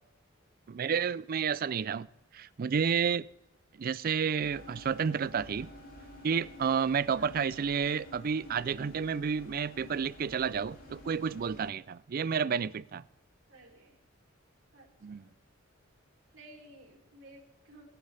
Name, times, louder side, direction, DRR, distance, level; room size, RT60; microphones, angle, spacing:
voice 1, 0.7-2.1 2.3-3.3 3.8-5.7 6.2-13.0 15.0-15.2, right 6 dB, 45° right, 0.4 m, -30 dB
sound 1, 4.4-11.7, equal, 45° left, 2.7 m, -50 dB
voice 2, 7.1-7.5 13.5-14.0 14.7-15.3 16.3-17.9, right 1 dB, 75° right, 3.4 m, -54 dB
19.5 x 9.2 x 3.4 m
head